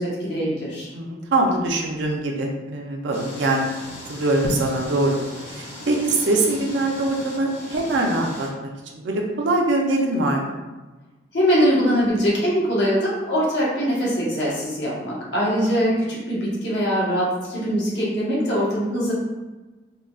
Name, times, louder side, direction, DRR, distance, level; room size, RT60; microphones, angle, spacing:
voice 1, 0.0-0.9 11.3-19.1, equal, 65° left, -5 dB, 1.0 m, -22 dB
voice 2, 0.9-3.6 4.1-5.2 5.5-8.5 8.9-10.6 15.7-16.0, right 2 dB, 70° right, 0 dB, 0.5 m, -23 dB
sound 1, 3.1-8.5, left 1 dB, 35° left, 0.7 m, -39 dB
3.6 x 2.2 x 2.3 m, 1.2 s
head